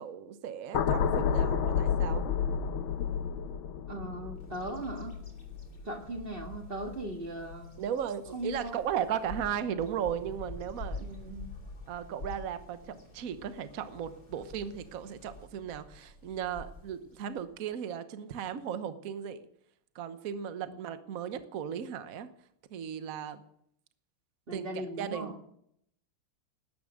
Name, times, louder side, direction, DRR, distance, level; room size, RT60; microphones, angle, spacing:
voice 1, 0.0-2.2 7.8-11.0 11.9-19.5 19.9-22.3 22.7-23.4 24.5-25.4, right 8 dB, 50° right, 11 dB, 1.2 m, -36 dB
sound 1, 0.7-7.0 7.4-7.7, left 7 dB, 70° left, 1.7 m, -31 dB
voice 2, 3.9-5.2 5.8-7.7 8.3-8.8 11.0-11.5 24.5-25.3, right 1 dB, 30° right, 4 dB, 1.8 m, -38 dB
Bird vocalization bird call bird song, 4.3-17.6, left 2 dB, 40° left, 3.2 m, -47 dB
19.0 x 10.5 x 6.5 m, 0.73 s
omnidirectional pair, 2.4 m